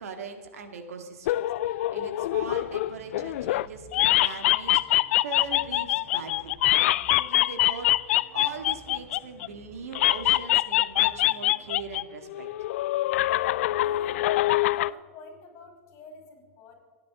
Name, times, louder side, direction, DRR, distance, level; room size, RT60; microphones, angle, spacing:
voice 1, 0.0-4.8 5.2-12.5, right 4 dB, 85° right, 5 dB, 2.1 m, -40 dB
sound 1, 1.3-3.7 3.9-9.5 9.9-12.0 12.3-14.9, left 15 dB, 65° left, 0.4 m, -24 dB
sound 2, 2.3-11.9, right 4 dB, 70° right, 3.9 m, -53 dB
voice 2, 13.8-14.2 14.7-16.8, left 3 dB, 40° left, 0 dB, 5.8 m, -48 dB
27.5 x 10.5 x 3.8 m, 1.6 s
hypercardioid pair, 130°, 8 cm